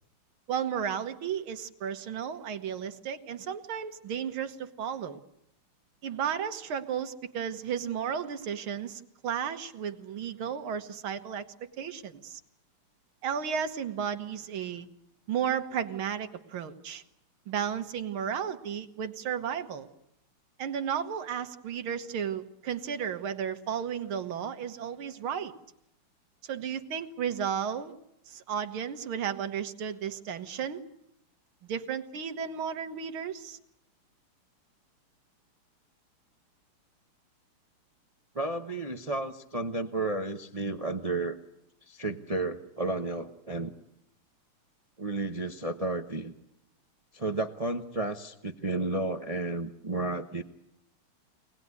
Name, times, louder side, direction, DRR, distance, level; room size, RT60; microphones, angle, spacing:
voice 1, 0.5-5.2 6.0-11.4 11.8-12.4 13.2-14.9 15.3-17.0 17.5-19.9 20.6-25.5 26.4-27.9 28.3-30.8 31.7-33.6, right 8 dB, 70° right, 9 dB, 2.0 m, -33 dB
voice 2, 38.3-41.4 41.9-43.7 45.0-46.3 47.1-50.4, right 2 dB, 55° right, 6 dB, 0.4 m, -32 dB
24.0 x 19.0 x 9.6 m, 0.84 s
omnidirectional pair, 2.4 m